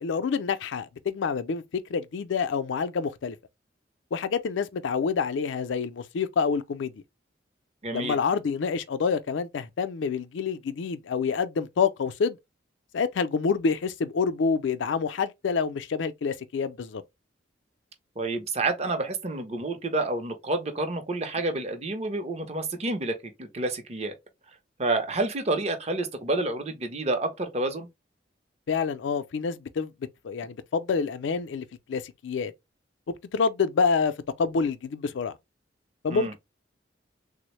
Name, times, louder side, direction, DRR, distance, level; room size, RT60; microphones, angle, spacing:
voice 1, 0.0-3.4 4.1-7.0 7.9-12.4 12.9-17.0 28.7-29.9 30.2-32.5 33.3-34.1 34.4-35.3 36.0-36.4, left 5 dB, 80° left, 0.4 m, -27 dB
voice 2, 7.8-8.2 18.2-24.1 24.8-27.9 36.1-36.3, right 2 dB, 35° right, 0.6 m, -29 dB
3.4 x 2.0 x 3.0 m
head